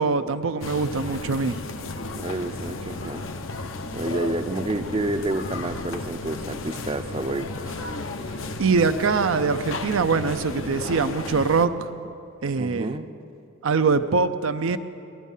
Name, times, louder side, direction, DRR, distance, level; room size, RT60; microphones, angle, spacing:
voice 1, 0.0-1.6 8.6-12.1 12.4-12.9 13.6-14.8, right 4 dB, 75° right, 9 dB, 0.5 m, -23 dB
sound 1, 0.6-11.7, left 2 dB, 70° left, 0.8 m, -34 dB
voice 2, 2.1-3.3 3.9-7.8 12.6-13.1, right 2 dB, 25° right, 10 dB, 0.5 m, -29 dB
20.0 x 12.0 x 5.5 m, 2.7 s
head